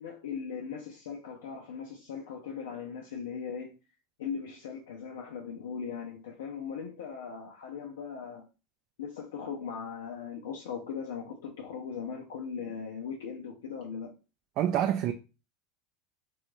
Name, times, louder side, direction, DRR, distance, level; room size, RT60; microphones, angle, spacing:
voice 1, 0.0-3.7 4.2-8.5 9.0-14.1, left 6 dB, 80° left, 0.4 m, -39 dB
voice 2, 14.6-15.1, right 10 dB, 50° right, 0.3 m, -26 dB
2.8 x 2.3 x 3.0 m
hypercardioid pair, 95°, 0 cm